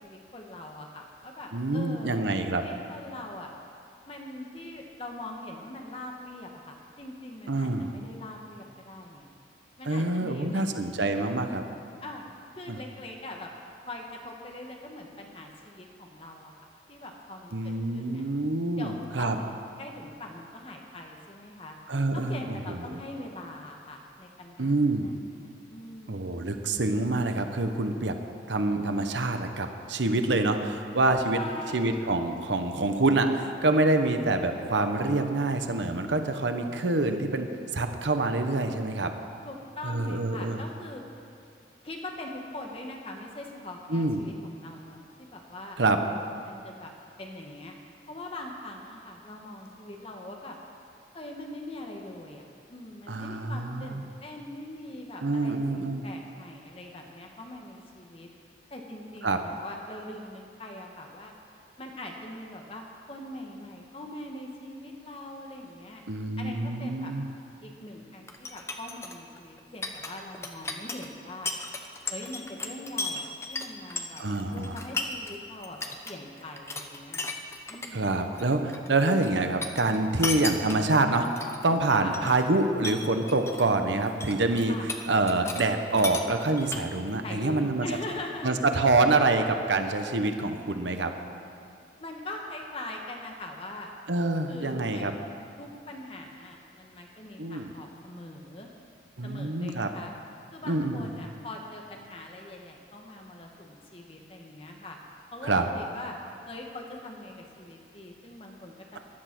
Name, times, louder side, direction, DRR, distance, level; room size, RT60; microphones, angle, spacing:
voice 1, 0.0-2.2 2.6-3.5 4.1-9.3 9.8-10.7 12.0-12.3 12.5-13.5 13.8-16.5 16.9-18.2 18.8-21.8 22.1-26.4 31.3-32.0 39.4-41.0 41.8-46.9 47.2-47.7 48.1-50.6 51.1-58.3 58.7-61.3 61.8-66.0 66.4-67.1 67.6-71.5 72.1-74.2 74.5-75.8 76.0-77.4 77.7-78.1 81.9-82.1 84.7-84.9 87.2-88.6 92.0-93.9 94.5-95.2 95.6-98.7 99.2-100.1 100.5-105.0 105.3-106.2 106.5-109.0, left 1 dB, 30° left, 1 dB, 1.4 m, -42 dB
voice 2, 1.5-2.6 7.5-7.9 9.9-11.6 12.7-12.8 17.5-19.4 21.9-22.5 22.9-23.0 24.6-25.1 26.1-28.1 28.5-31.4 31.7-37.5 37.7-39.1 39.8-40.6 43.9-44.2 45.8-46.0 53.1-54.0 55.2-56.0 59.2-59.4 66.1-67.3 74.2-74.8 77.9-84.7 85.1-87.9 88.4-91.1 94.1-95.1 97.4-97.7 99.2-99.9 100.7-101.0 105.4-105.7, right 2 dB, 85° right, 6 dB, 1.0 m, -26 dB
sound 1, 68.3-75.4 75.6-76.1 76.4-77.9 78.2-79.3 79.6-81.7 82.1-82.5 82.8-83.7 84.0-85.7 85.9-87.1, left 3 dB, 15° left, 0.8 m, -35 dB
15.0 x 11.5 x 6.1 m, 2.4 s
head